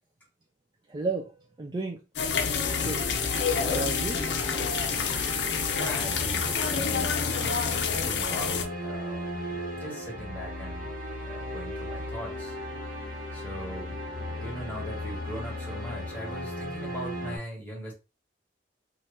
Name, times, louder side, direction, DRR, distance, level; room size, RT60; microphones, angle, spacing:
voice 1, 0.9-2.0 2.6-3.0 3.5-4.4, right 3 dB, 25° right, 0.4 m, -33 dB
sound 1, 2.2-8.7, left 6 dB, 70° left, 0.5 m, -28 dB
sound 2, 2.2-17.4, left 1 dB, 50° right, 1.2 m, -36 dB
voice 2, 5.7-10.9 11.2-12.6 13.3-17.9, equal, 10° left, 1.3 m, -40 dB
2.8 x 2.5 x 3.2 m
head